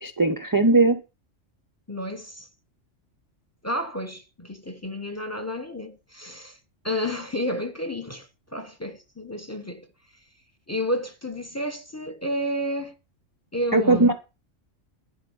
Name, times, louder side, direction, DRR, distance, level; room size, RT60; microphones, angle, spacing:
voice 1, 0.0-1.0 13.7-14.1, right 2 dB, 25° right, 0.5 m, -19 dB
voice 2, 1.9-2.5 3.6-6.6 6.8-9.9 10.7-12.9 13.5-14.1, equal, 15° left, 0.8 m, -31 dB
11.5 x 4.4 x 6.9 m
omnidirectional pair, 1.3 m